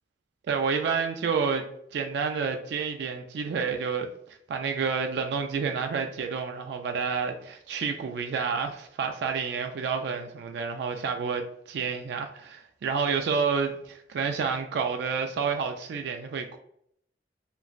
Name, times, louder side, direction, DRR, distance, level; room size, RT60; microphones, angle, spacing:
voice 1, 0.5-1.6 1.9-4.1 4.5-16.6, right 5 dB, 70° right, 0.3 m, -29 dB
3.0 x 2.4 x 2.4 m
head